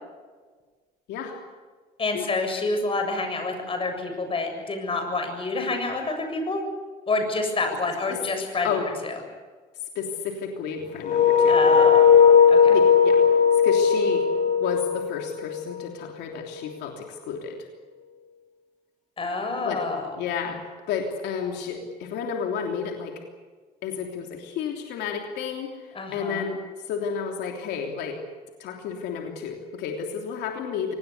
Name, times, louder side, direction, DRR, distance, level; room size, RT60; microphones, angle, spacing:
voice 1, 2.0-6.6 7.1-8.8 9.0-9.2 11.5-12.2 12.5-12.8 19.2-20.2 25.9-26.5, left 3 dB, 30° left, 5 dB, 7.4 m, -28 dB
voice 2, 9.9-11.6 12.7-13.2 13.6-14.3 14.6-17.6 19.6-19.8 20.2-20.6 20.9-23.1 23.8-26.6 26.9-28.2 28.6-30.9, left 6 dB, 80° left, 2 dB, 3.3 m, -31 dB
sound 1, 11.0-15.9, left 6 dB, 50° left, 3.6 m, -17 dB
25.5 x 19.5 x 8.4 m, 1.4 s
cardioid pair, 110°, 17 cm